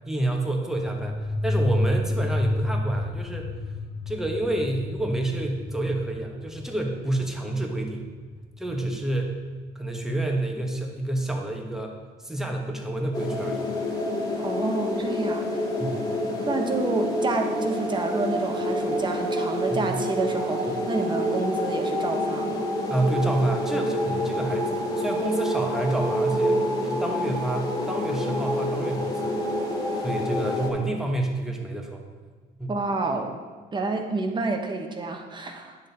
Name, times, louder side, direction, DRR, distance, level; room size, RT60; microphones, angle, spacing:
voice 1, 0.0-3.6 4.1-8.1 8.6-9.4 9.7-13.7 15.8-16.0 19.7-20.0 22.9-29.3 30.0-32.0 32.6-32.7, right 2 dB, 5° right, 1 dB, 1.3 m, -29 dB
sound 1, 0.7-9.1, left 1 dB, 55° left, 2.0 m, -30 dB
sound 2, 13.1-30.7, equal, 20° left, 1.6 m, -27 dB
voice 2, 14.4-15.7 16.4-22.7 32.7-33.3 33.7-35.8, right 3 dB, 25° right, 4 dB, 1.0 m, -29 dB
9.9 x 6.4 x 4.2 m, 1.5 s
cardioid pair, 110°, 17 cm